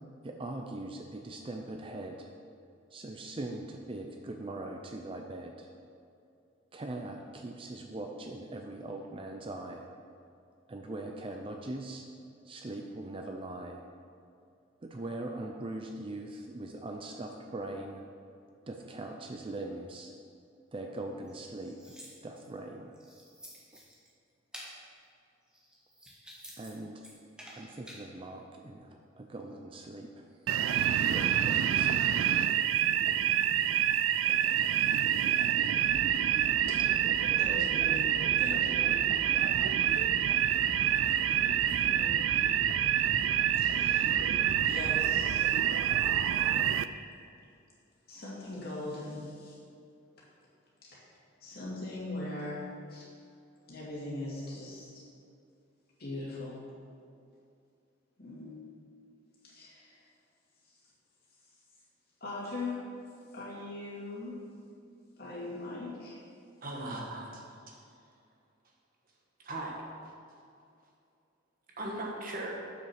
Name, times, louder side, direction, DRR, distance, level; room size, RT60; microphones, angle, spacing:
voice 1, 0.2-2.3 2.9-5.7 6.7-9.9 10.7-12.1 12.5-13.8 14.8-18.0 18.7-20.1 20.7-22.0 22.2-22.9 23.7-23.8 26.6-27.0 27.5-30.2 30.7-30.8 31.1-31.9, right 2 dB, 25° right, 3 dB, 0.5 m, -41 dB
sound 1, 21.2-22.5 22.9-24.1 24.5-24.8 25.5-26.7 27.0-28.0, equal, 5° right, 1.4 m, -50 dB
sound 2, 30.5-46.9, right 10 dB, 85° right, 0.3 m, -27 dB
sound 3, 35.8-45.5, equal, 15° left, 1.0 m, -46 dB
voice 2, 37.4-39.0 41.8-42.3 43.6-44.4 44.6-45.5 48.1-49.6 50.8-51.1 51.4-53.1 53.7-55.0 56.0-56.6 58.2-58.7 59.4-60.0 62.2-62.9 63.3-64.5 65.2-66.2 67.1-67.2, left 2 dB, 55° left, -5 dB, 2.3 m, -41 dB
voice 3, 66.6-67.8 69.4-69.7 71.8-72.5, right 1 dB, 45° right, -1 dB, 1.4 m, -38 dB
7.5 x 6.4 x 5.9 m, 2.5 s
head